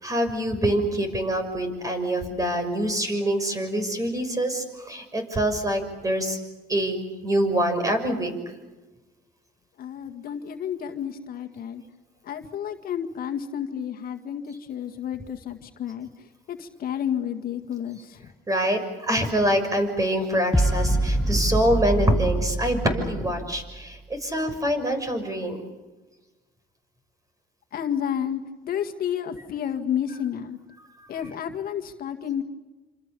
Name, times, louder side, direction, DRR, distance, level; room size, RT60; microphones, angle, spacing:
voice 1, 0.0-6.4 6.7-8.3 18.5-25.6, right 1 dB, 20° right, 7 dB, 6.0 m, -25 dB
voice 2, 9.8-11.8 12.2-18.3 27.7-30.6 31.1-32.4, left 9 dB, 60° left, 6 dB, 1.9 m, -31 dB
sound 1, 20.5-24.0, right 1 dB, 5° left, 1.1 m, -25 dB
27.5 x 27.0 x 6.9 m, 1.2 s
cardioid pair, 110°, 17 cm